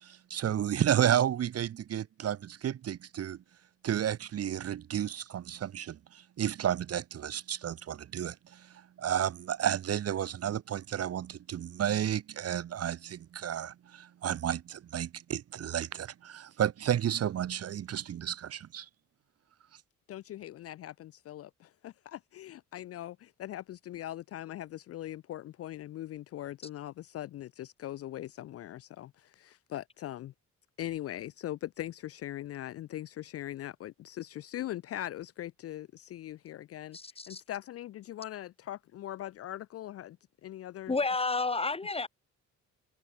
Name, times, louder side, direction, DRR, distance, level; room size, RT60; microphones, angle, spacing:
voice 1, 0.0-3.4 3.8-18.9, right 10 dB, 55° right, 1.0 m, -32 dB
voice 2, 20.1-30.3 30.8-37.0 37.3-40.2 40.4-40.9, left 13 dB, 50° left, 0.4 m, -41 dB
voice 3, 36.9-37.4 40.9-42.1, left 3 dB, 20° left, 1.6 m, -31 dB
cardioid pair, 90°, 30 cm